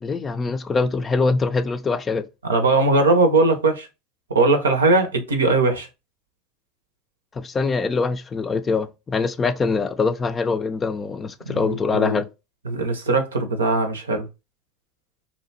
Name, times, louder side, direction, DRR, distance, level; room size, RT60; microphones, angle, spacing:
voice 1, 0.0-2.3 7.4-12.3, left 4 dB, 25° left, 0.4 m, -23 dB
voice 2, 2.4-3.9 4.3-5.9 11.5-12.2 12.7-14.3, right 2 dB, 90° right, 0.6 m, -20 dB
2.7 x 2.2 x 2.6 m
hypercardioid pair, 80°, 0 cm